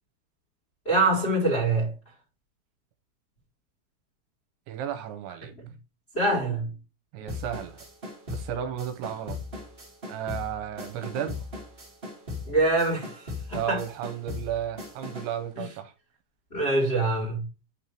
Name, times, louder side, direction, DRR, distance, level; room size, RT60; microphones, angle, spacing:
voice 1, 0.8-1.9 6.1-6.7 12.4-13.8 15.6-15.7 16.5-17.4, right 2 dB, 15° left, 2.2 m, -24 dB
voice 2, 4.7-5.5 7.1-7.8 8.3-9.4 10.1-11.4 13.5-15.9, right 10 dB, 75° right, 3.1 m, -33 dB
sound 1, 7.3-15.4, left 3 dB, 25° right, 1.3 m, -39 dB
9.1 x 3.6 x 4.4 m
omnidirectional pair, 5.6 m